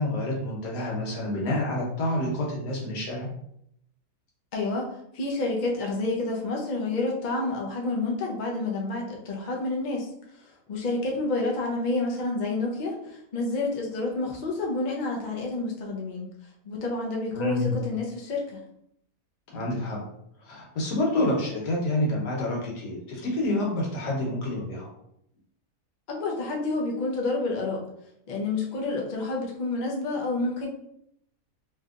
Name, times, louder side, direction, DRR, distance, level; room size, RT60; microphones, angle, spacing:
voice 1, 0.0-3.3 17.3-17.7 19.5-20.0 20.4-24.9, left 1 dB, 85° left, -2 dB, 1.5 m, -28 dB
voice 2, 4.5-4.9 5.1-10.1 10.4-16.3 16.6-18.6 26.1-27.8 28.3-30.7, left 2 dB, 70° left, -1 dB, 0.4 m, -29 dB
3.2 x 2.7 x 2.4 m, 0.75 s
omnidirectional pair, 1.7 m